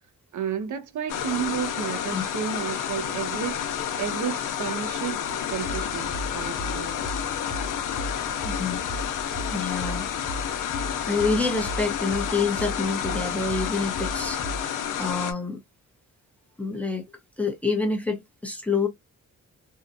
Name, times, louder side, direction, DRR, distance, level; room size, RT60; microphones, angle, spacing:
voice 1, 0.3-3.7 4.0-7.0, right 8 dB, 70° right, 0.5 m, -32 dB
sound 1, 1.1-15.3, left 9 dB, 85° left, 0.6 m, -30 dB
sound 2, 5.5-14.6, equal, 30° left, 1.0 m, -37 dB
voice 2, 8.4-8.8 9.5-10.1 10.6-14.4 15.0-15.6 16.6-17.0 17.4-18.9, left 4 dB, 5° left, 0.7 m, -27 dB
2.7 x 2.1 x 2.5 m
wide cardioid pair, 130°, 31 cm